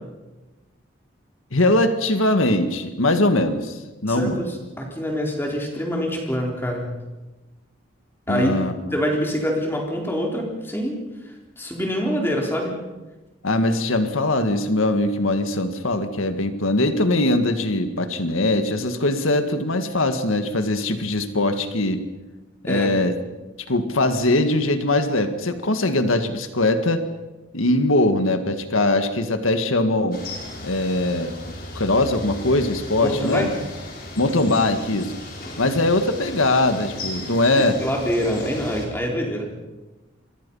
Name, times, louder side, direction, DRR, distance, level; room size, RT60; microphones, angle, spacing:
voice 1, 1.5-4.4 8.3-8.7 13.4-22.0 22.6-23.1 23.7-27.1 27.5-30.2 30.6-31.3 31.8-33.5 34.2-35.1 35.6-37.8, left 2 dB, 90° left, 8 dB, 1.9 m, -21 dB
voice 2, 4.1-6.9 8.3-8.5 8.9-11.0 11.6-12.8 22.7-22.9 33.0-33.5 37.6-39.4, equal, 10° left, 0 dB, 4.1 m, -25 dB
sound 1, 30.1-38.9, left 1 dB, 45° left, 5.4 m, -36 dB
27.5 x 24.0 x 5.6 m, 1.1 s
head